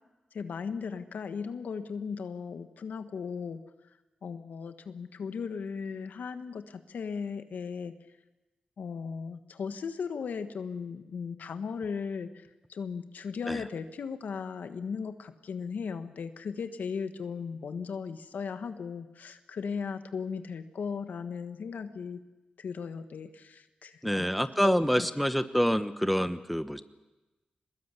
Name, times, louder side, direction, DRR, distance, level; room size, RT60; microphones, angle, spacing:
voice 1, 0.3-3.6 4.2-7.9 8.8-22.2 22.6-24.2 24.6-25.1, left 6 dB, 85° left, 9 dB, 1.4 m, -37 dB
voice 2, 24.0-26.8, equal, ahead, 11 dB, 1.2 m, -27 dB
23.0 x 20.5 x 8.3 m, 1.1 s
cardioid pair, 65°, 3 cm